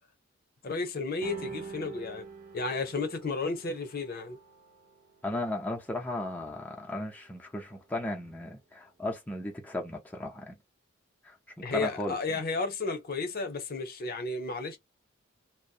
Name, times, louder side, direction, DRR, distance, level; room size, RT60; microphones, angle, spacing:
voice 1, 0.6-2.3 2.5-4.4 11.6-14.8, left 3 dB, 50° left, 0.6 m, -33 dB
sound 1, 1.2-7.9, right 4 dB, 40° right, 0.7 m, -46 dB
voice 2, 5.2-10.6 11.2-12.2, left 1 dB, 10° left, 0.5 m, -35 dB
2.6 x 2.0 x 2.4 m
head